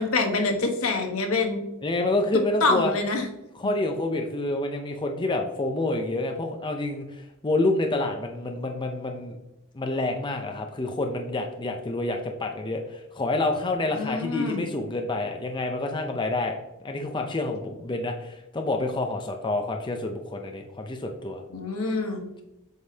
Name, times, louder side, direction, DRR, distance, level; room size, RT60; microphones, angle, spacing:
voice 1, 0.0-1.6 2.6-3.3 13.9-14.6 21.5-22.2, left 3 dB, 70° left, 4 dB, 1.2 m, -26 dB
voice 2, 1.8-2.9 3.5-9.4 9.7-21.4, left 2 dB, 20° left, 3 dB, 0.5 m, -28 dB
7.9 x 5.2 x 2.8 m, 0.94 s
head